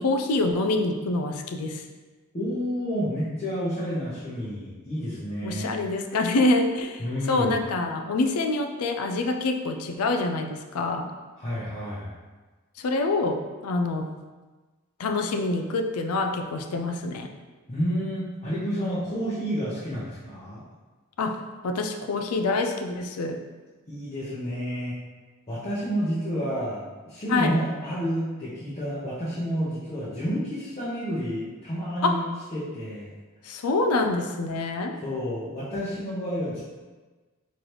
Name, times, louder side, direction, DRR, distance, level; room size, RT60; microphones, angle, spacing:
voice 1, 0.0-1.8 5.4-11.1 12.8-14.1 15.0-17.3 21.2-21.4 21.6-23.4 27.3-27.6 32.0-32.2 33.4-35.0, left 2 dB, 80° left, 6 dB, 0.4 m, -26 dB
voice 2, 2.3-5.7 7.0-7.6 11.4-12.1 17.7-20.6 23.9-24.9 25.5-32.2 32.5-33.1 35.0-36.6, equal, 30° left, -11 dB, 0.8 m, -30 dB
3.9 x 3.2 x 3.0 m, 1.3 s
head